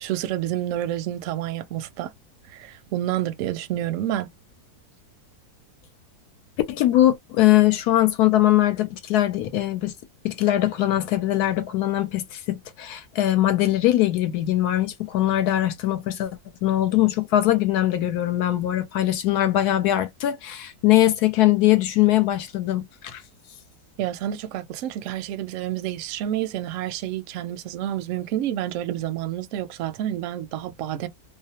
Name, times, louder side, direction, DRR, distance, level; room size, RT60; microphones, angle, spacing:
voice 1, 0.0-2.1 2.5-4.3 24.0-31.1, right 12 dB, 70° right, 0.8 m, -29 dB
voice 2, 6.7-9.9 10.2-16.3 16.6-23.2, left 14 dB, 75° left, 1.1 m, -21 dB
2.7 x 2.0 x 2.7 m
omnidirectional pair, 1.7 m